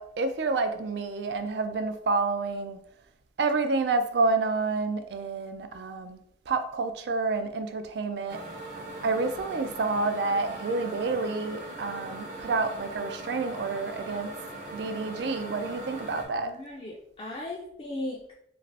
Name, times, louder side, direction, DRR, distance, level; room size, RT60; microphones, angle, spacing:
voice 1, 0.0-2.8 3.4-6.2 6.5-8.4 9.0-14.3 14.7-16.5, right 3 dB, 75° right, 0.3 m, -29 dB
sound 1, 8.3-16.3, right 1 dB, 50° right, 0.7 m, -40 dB
voice 2, 16.4-18.3, left 1 dB, 30° left, 0.3 m, -37 dB
2.5 x 2.4 x 3.2 m
head